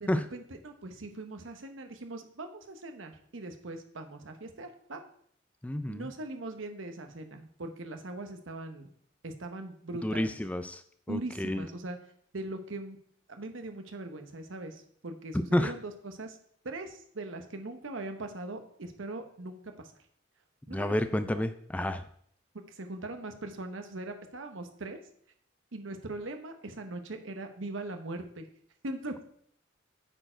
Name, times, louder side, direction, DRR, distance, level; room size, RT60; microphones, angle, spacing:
voice 1, 0.0-5.0 5.9-8.9 9.2-10.4 11.1-12.0 12.3-13.0 13.3-16.4 16.6-19.9 20.7-21.4 22.7-25.0 25.7-28.5 28.8-29.2, right 2 dB, 85° right, 6 dB, 1.0 m, -40 dB
voice 2, 5.6-6.1 10.0-10.8 11.1-11.6 15.3-15.7 20.7-22.0, left 1 dB, 5° left, 10 dB, 0.3 m, -30 dB
8.9 x 4.5 x 4.4 m, 0.63 s
head